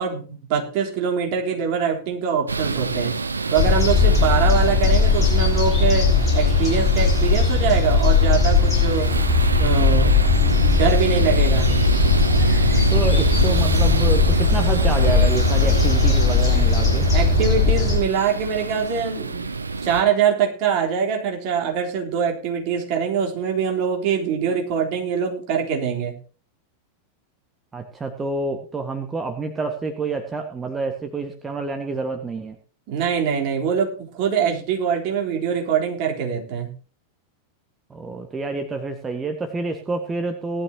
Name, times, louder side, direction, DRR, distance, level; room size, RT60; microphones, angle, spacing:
voice 1, 0.0-3.1 3.5-9.2 9.6-11.7 17.1-19.5 19.8-26.2 32.9-36.7, right 7 dB, 45° right, 1 dB, 3.7 m, -23 dB
sound 1, 2.5-20.0, right 4 dB, 75° right, 0.7 m, -27 dB
sound 2, 3.6-18.0, left 4 dB, 20° left, 5.8 m, -18 dB
voice 2, 12.9-17.1 27.7-32.6 37.9-40.6, right 3 dB, 15° right, 5 dB, 1.6 m, -28 dB
18.5 x 12.5 x 2.9 m, 0.37 s
figure-of-eight pair, 90°, 0 cm